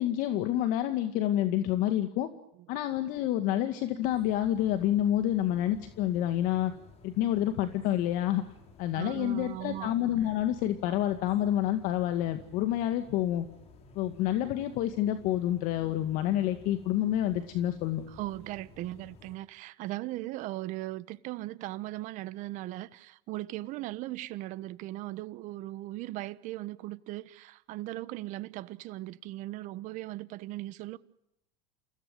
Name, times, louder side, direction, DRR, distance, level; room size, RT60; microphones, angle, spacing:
voice 1, 0.0-2.3 2.7-6.7 7.0-8.4 8.8-13.5 14.0-18.0, left 12 dB, 60° left, 2.1 m, -28 dB
sound 1, 4.0-19.4, left 4 dB, 45° left, 6.0 m, -55 dB
voice 2, 8.9-9.9 18.1-31.0, right 17 dB, 55° right, 1.3 m, -38 dB
29.0 x 17.0 x 9.3 m
supercardioid pair, 95°, 15 cm